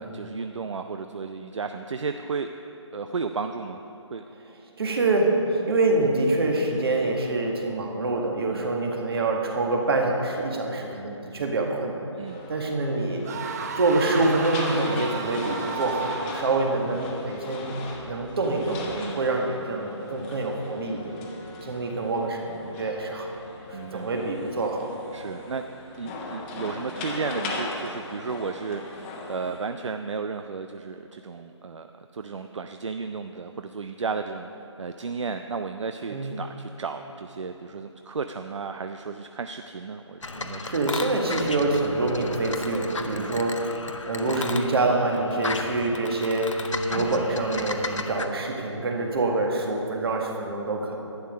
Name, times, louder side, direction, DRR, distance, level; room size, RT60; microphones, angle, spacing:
voice 1, 0.0-2.5 2.9-3.8 4.1-4.2 8.5-8.7 12.2-12.4 18.9-19.3 23.7-24.3 25.1-25.7 26.0-34.5 34.8-40.7 43.1-43.3, right 5 dB, 75° right, 7 dB, 0.5 m, -33 dB
voice 2, 4.8-12.0 12.5-13.3 13.8-21.1 21.6-23.3 23.7-24.9 36.1-36.4 40.6-43.7 44.1-51.0, right 2 dB, 50° right, 1 dB, 1.8 m, -26 dB
sound 1, 12.3-29.6, left 2 dB, 15° left, 1.1 m, -39 dB
sound 2, 13.2-16.6, right 6 dB, 35° right, 0.6 m, -34 dB
sound 3, 40.2-48.3, left 3 dB, 80° left, 0.9 m, -34 dB
11.5 x 9.8 x 5.2 m, 3.0 s
figure-of-eight pair, 150°, 16 cm